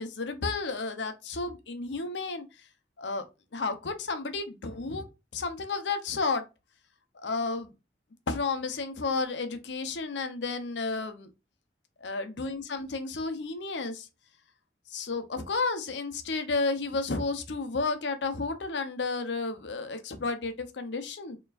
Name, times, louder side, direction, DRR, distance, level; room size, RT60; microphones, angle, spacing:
voice 1, 0.0-2.5 3.0-3.2 3.5-5.1 5.3-6.4 7.1-7.7 8.3-11.3 12.0-14.1 14.9-21.4, left 3 dB, 85° left, 0.7 m, -32 dB
4.5 x 3.0 x 2.4 m
head